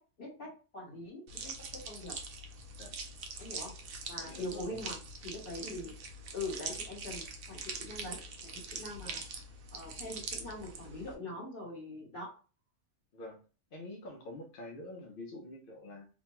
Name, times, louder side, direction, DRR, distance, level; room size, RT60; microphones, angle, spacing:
voice 1, 0.2-2.2 3.4-3.7 4.1-5.0 5.2-6.0 6.3-9.2 9.7-12.3, left 1 dB, 45° left, -4 dB, 1.5 m, -43 dB
sound 1, 1.3-11.1, right 4 dB, 60° right, 0.6 m, -43 dB
voice 2, 4.2-4.9 9.0-9.2 13.1-13.4 13.7-16.1, left 1 dB, 60° left, 1 dB, 0.6 m, -47 dB
3.0 x 2.2 x 2.9 m, 0.37 s
omnidirectional pair, 1.4 m